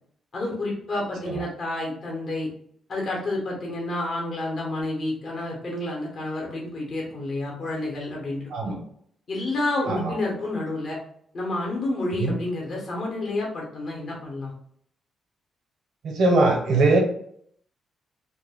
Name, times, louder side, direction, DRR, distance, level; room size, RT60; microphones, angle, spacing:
voice 1, 0.3-2.5 2.9-8.7 9.3-11.0 11.3-14.5, left 2 dB, 50° left, -2 dB, 0.8 m, -29 dB
voice 2, 16.0-17.0, right 2 dB, 75° right, 1 dB, 0.7 m, -20 dB
2.2 x 2.0 x 3.3 m, 0.66 s
cardioid pair, 100°, 0 cm